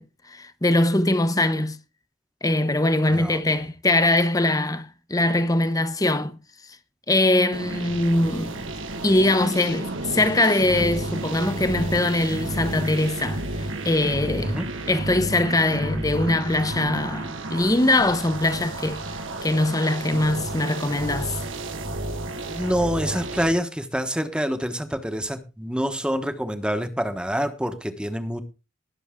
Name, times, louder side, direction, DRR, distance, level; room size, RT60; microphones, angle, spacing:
voice 1, 0.0-1.8 2.4-6.4 7.1-8.6 9.0-14.6 14.9-19.0 19.4-21.4, left 2 dB, 20° left, 0.9 m, -22 dB
voice 2, 3.1-3.6 14.4-14.7 22.5-28.4, equal, 5° right, 1.2 m, -27 dB
sound 1, 7.5-23.5, right 2 dB, 85° right, 1.6 m, -31 dB
20.0 x 7.0 x 3.7 m
head